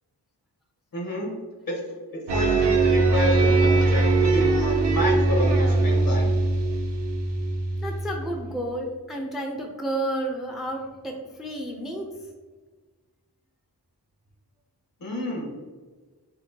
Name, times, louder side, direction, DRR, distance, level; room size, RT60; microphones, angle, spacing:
voice 1, 0.9-1.3 1.7-1.8 2.3-6.3 15.0-15.5, left 1 dB, 55° left, -1 dB, 1.3 m, -29 dB
sound 1, 2.3-8.5, right 3 dB, 80° right, 0.7 m, -21 dB
voice 2, 7.8-12.1, right 1 dB, ahead, 1 dB, 0.5 m, -31 dB
4.4 x 3.2 x 2.8 m, 1.4 s
wide cardioid pair, 65°, 41 cm